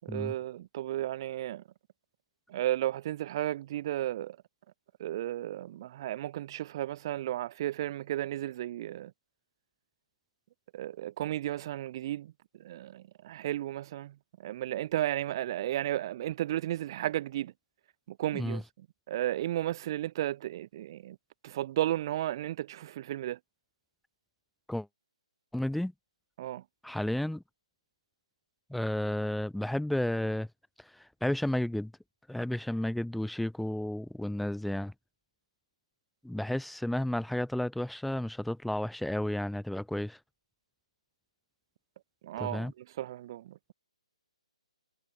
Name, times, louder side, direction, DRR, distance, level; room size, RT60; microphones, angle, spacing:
voice 1, 0.0-1.6 2.5-4.4 5.0-9.1 10.7-17.5 18.1-18.6 19.1-21.2 21.4-23.4 26.4-26.6 42.2-43.6, right 13 dB, 40° right, 6.7 m, -34 dB
voice 2, 25.5-25.9 26.8-27.4 28.7-30.5 30.8-31.9 32.3-34.9 36.2-40.2 42.4-42.7, left 1 dB, ahead, 6.3 m, -32 dB
hypercardioid pair, 145°, 4 cm